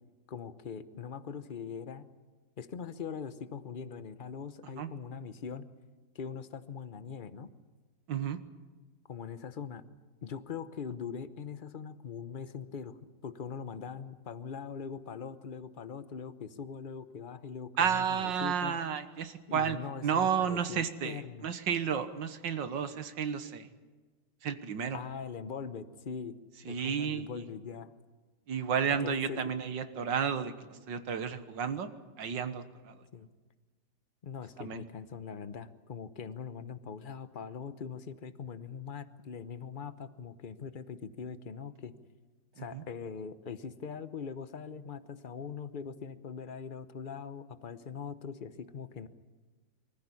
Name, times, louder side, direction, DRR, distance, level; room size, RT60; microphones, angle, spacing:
voice 1, 0.3-2.1 2.6-5.7 6.1-7.5 9.1-9.8 10.2-13.0 13.2-18.8 19.5-21.5 24.9-26.4 26.6-27.9 28.9-29.5 33.1-33.3 34.2-41.9 42.6-49.1, left 6 dB, 40° left, 13 dB, 0.8 m, -42 dB
voice 2, 17.8-19.8 20.0-23.7 24.4-25.0 26.7-27.2 28.5-30.5 30.9-31.9 32.2-32.9 34.6-34.8 42.7-42.8, right 7 dB, 80° right, 10 dB, 2.0 m, -32 dB
24.0 x 15.0 x 9.8 m, 1.3 s
omnidirectional pair, 2.0 m